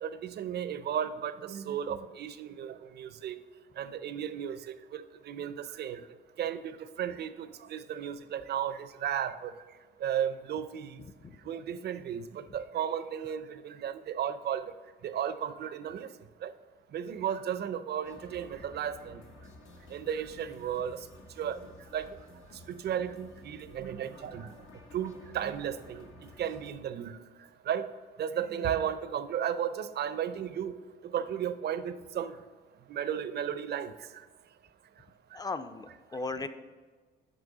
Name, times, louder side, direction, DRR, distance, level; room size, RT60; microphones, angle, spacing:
voice 1, 0.0-3.4 3.8-6.0 6.4-6.7 7.0-9.5 10.0-11.0 11.5-14.7 15.0-16.1 16.4-16.5 16.9-19.2 19.9-21.1 21.4-21.6 21.9-22.1 22.7-24.5 24.9-27.2 27.7-27.9 28.2-30.8 31.0-32.3 32.9-33.9, right 9 dB, 55° right, 12 dB, 0.5 m, -34 dB
sound 1, 18.0-26.7, left 2 dB, 80° left, 0.9 m, -53 dB
voice 2, 35.3-36.5, left 3 dB, 20° left, 10 dB, 0.4 m, -36 dB
6.1 x 5.2 x 3.9 m, 1.4 s
cardioid pair, 90°, 20 cm